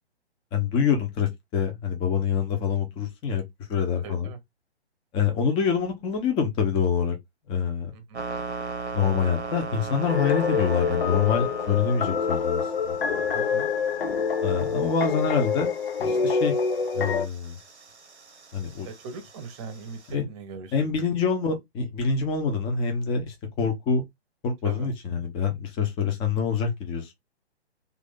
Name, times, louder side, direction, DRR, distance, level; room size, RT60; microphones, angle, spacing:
voice 1, 0.5-3.4 3.7-4.3 5.1-7.2 7.5-7.9 8.9-13.4 14.4-15.7 16.0-16.5 16.9-17.6 18.5-18.9 20.1-20.2 20.7-24.0 24.4-27.1, left 6 dB, 15° left, 0.8 m, -26 dB
voice 2, 4.0-4.4 7.9-8.2 13.3-13.7 18.8-21.2 24.6-24.9, right 5 dB, 25° right, 0.9 m, -40 dB
sound 1, 8.1-20.1, right 4 dB, 85° right, 0.9 m, -39 dB
sound 2, 10.1-17.3, left 6 dB, 60° left, 0.7 m, -26 dB
3.3 x 2.6 x 3.6 m
figure-of-eight pair, 130°, 33 cm